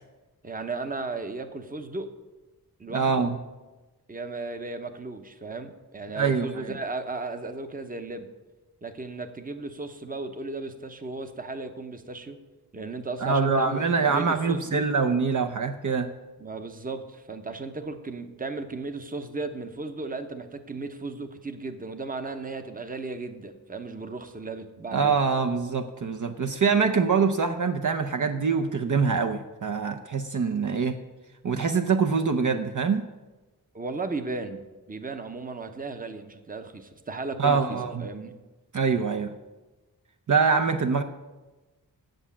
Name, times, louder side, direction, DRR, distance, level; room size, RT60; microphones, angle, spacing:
voice 1, 0.4-2.1 2.8-3.3 4.1-8.3 8.8-12.4 12.7-14.9 16.4-25.2 33.7-34.6 34.9-38.4, right 3 dB, 20° right, 8 dB, 0.8 m, -35 dB
voice 2, 2.9-3.4 6.2-6.7 13.2-16.1 24.9-31.0 31.4-33.1 37.4-38.1 38.7-39.3 40.3-41.0, right 5 dB, 50° right, 6 dB, 0.7 m, -24 dB
8.0 x 7.1 x 8.6 m, 1.2 s
wide cardioid pair, 100°, 38 cm